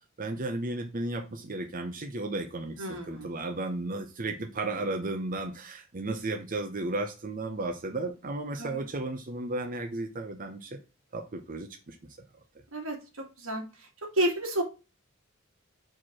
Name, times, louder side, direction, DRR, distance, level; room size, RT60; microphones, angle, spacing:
voice 1, 0.2-10.8 11.1-12.0, right 2 dB, 45° right, 5 dB, 0.8 m, -34 dB
voice 2, 2.8-3.3 8.6-8.8 12.7-13.0 13.4-13.6 14.1-14.6, right 1 dB, 90° right, 1 dB, 2.3 m, -30 dB
4.7 x 4.7 x 5.9 m, 0.31 s
head